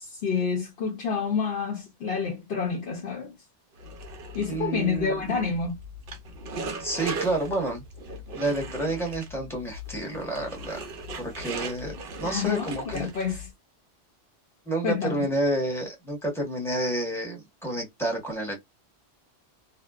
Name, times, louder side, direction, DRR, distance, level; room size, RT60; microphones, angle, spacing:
voice 1, 0.0-3.4 4.3-5.7 12.2-13.5 14.8-15.3, left 5 dB, 60° left, 0.9 m, -28 dB
sound 1, 3.8-13.5, right 2 dB, 60° right, 0.7 m, -38 dB
voice 2, 4.5-5.4 6.8-7.8 8.3-10.8 11.2-13.1 14.7-18.6, right 1 dB, ahead, 1.0 m, -29 dB
2.6 x 2.1 x 2.2 m
omnidirectional pair, 1.3 m